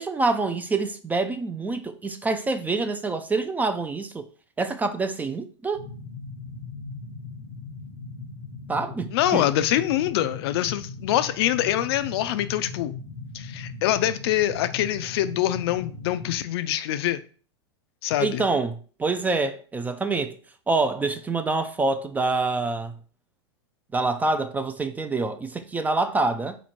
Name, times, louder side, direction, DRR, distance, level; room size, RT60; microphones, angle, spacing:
voice 1, 0.0-4.3 4.6-5.8 8.7-9.5 18.2-20.4 20.7-22.9 23.9-26.6, right 3 dB, 10° right, 0.3 m, -26 dB
sound 1, 5.7-16.4, left 3 dB, 90° left, 1.1 m, -38 dB
voice 2, 9.1-12.9 13.3-17.2 18.0-18.4, left 13 dB, 60° left, 0.4 m, -24 dB
4.0 x 3.1 x 4.2 m
hypercardioid pair, 110°, 15 cm